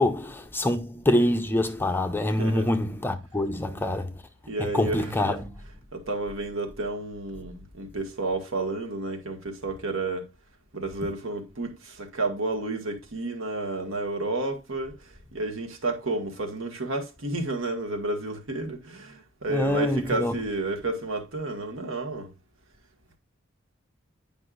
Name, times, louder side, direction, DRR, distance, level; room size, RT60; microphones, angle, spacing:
voice 1, 0.0-4.2 4.6-5.6 19.5-20.3, left 1 dB, 10° left, 0.5 m, -25 dB
voice 2, 2.4-2.7 4.5-5.4 5.9-10.3 10.7-22.3, right 2 dB, 65° right, 1.5 m, -31 dB
9.6 x 5.4 x 2.4 m
head